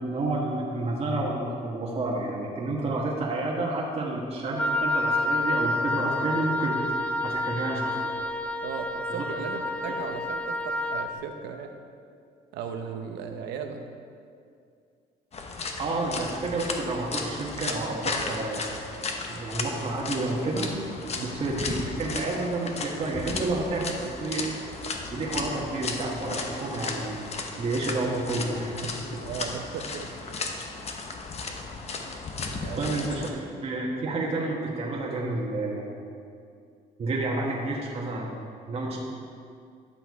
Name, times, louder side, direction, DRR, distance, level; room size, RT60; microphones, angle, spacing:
voice 1, 0.0-8.1 9.1-9.2 15.8-18.6 19.3-20.7 21.2-24.5 25.1-27.1 27.6-29.2 32.8-35.8 37.0-38.3 38.7-39.0, right 2 dB, 35° right, -4 dB, 1.3 m, -30 dB
Wind instrument woodwind instrument, 4.6-11.1, left 1 dB, 10° left, 0.4 m, -28 dB
voice 2, 8.6-11.7 12.5-13.9 21.1-21.4 29.2-30.1 32.6-32.9, right 6 dB, 85° right, 5 dB, 0.8 m, -36 dB
sound 1, 15.3-33.3, left 4 dB, 40° left, 0.9 m, -35 dB
10.5 x 5.9 x 4.7 m, 2.3 s
cardioid pair, 110°, 17 cm